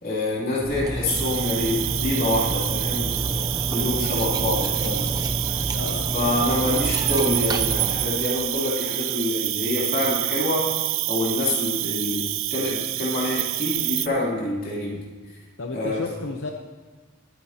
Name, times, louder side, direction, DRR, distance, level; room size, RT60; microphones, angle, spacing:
voice 1, 0.0-5.2 6.1-10.7 11.1-15.0 15.7-16.1, left 2 dB, 45° left, -5 dB, 3.0 m, -26 dB
Cutlery silverware, 0.6-8.3, right 1 dB, 20° right, 0.6 m, -29 dB
Cricket, 1.1-14.1, right 18 dB, 75° right, 0.3 m, -27 dB
voice 2, 5.7-6.4 15.6-16.5, left 3 dB, 70° left, 2 dB, 0.8 m, -33 dB
22.0 x 9.1 x 2.9 m, 1.3 s
head